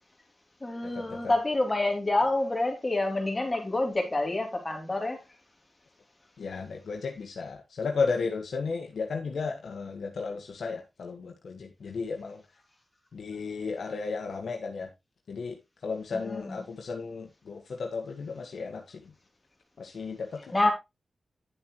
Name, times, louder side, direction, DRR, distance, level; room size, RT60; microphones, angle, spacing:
voice 1, 0.6-5.2 16.1-16.6 20.5-20.7, left 2 dB, 25° left, 3.2 m, -27 dB
voice 2, 6.4-12.4 13.1-14.9 15.3-19.1 19.8-20.5, left 4 dB, 75° left, 1.7 m, -34 dB
11.0 x 7.1 x 3.1 m
wide cardioid pair, 80°, 0 cm